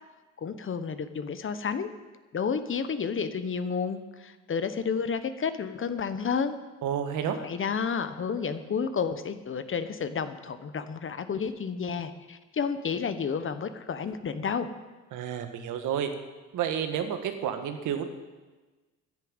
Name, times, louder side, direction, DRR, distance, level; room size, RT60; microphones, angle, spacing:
voice 1, 0.4-1.9 2.3-6.6 7.2-14.7, left 6 dB, 45° left, 11 dB, 1.1 m, -31 dB
voice 2, 6.8-7.4 15.1-16.1 16.5-18.1, right 9 dB, 85° right, 7 dB, 1.5 m, -30 dB
10.5 x 10.0 x 8.9 m, 1.2 s
cardioid pair, 90°, 30 cm